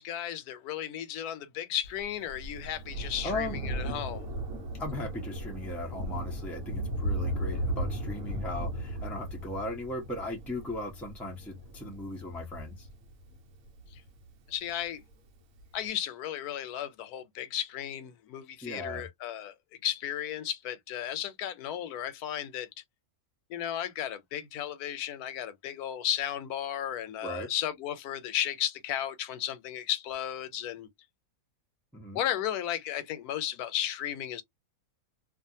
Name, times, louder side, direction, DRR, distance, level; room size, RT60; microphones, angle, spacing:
voice 1, 0.0-4.3 13.9-14.0 14.5-15.0 15.7-19.5 19.8-22.7 23.5-30.9 32.1-34.4, left 11 dB, 90° left, 1.1 m, -34 dB
Thunder, 1.8-14.7 15.6-15.7, right 1 dB, 70° right, 1.1 m, -36 dB
voice 2, 3.2-3.6 4.8-12.9 18.6-19.0 27.2-27.5 31.9-32.2, left 1 dB, ahead, 0.4 m, -37 dB
2.5 x 2.4 x 2.6 m
omnidirectional pair, 1.6 m